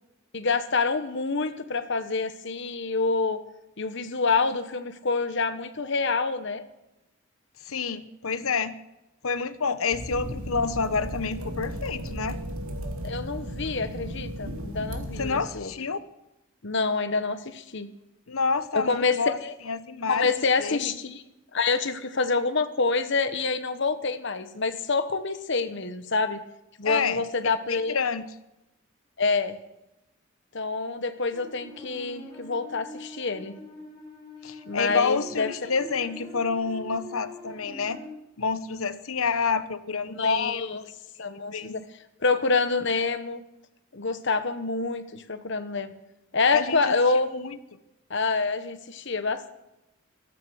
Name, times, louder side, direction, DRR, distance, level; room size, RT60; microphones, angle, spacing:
voice 1, 0.3-3.4 3.8-6.6 13.0-15.7 16.6-17.9 18.7-19.5 20.1-21.2 21.5-26.4 26.8-28.0 29.2-29.6 30.5-33.5 34.7-35.7 40.1-40.8 41.2-41.8 42.2-43.4 43.9-45.9 46.3-47.3 48.1-49.5, left 4 dB, 60° left, 11 dB, 1.1 m, -27 dB
voice 2, 7.6-8.7 9.2-12.4 15.2-16.0 18.3-19.4 19.6-20.3 20.6-20.9 26.8-27.2 27.7-28.2 34.4-38.0 38.4-40.6 41.5-41.8 46.5-46.9 47.3-47.6, left 5 dB, 80° left, 13 dB, 1.0 m, -28 dB
sound 1, 9.9-15.5, right 1 dB, 90° right, 2.5 m, -35 dB
sound 2, 31.3-38.1, left 2 dB, 20° left, 6.4 m, -43 dB
13.5 x 13.5 x 6.4 m, 0.91 s
head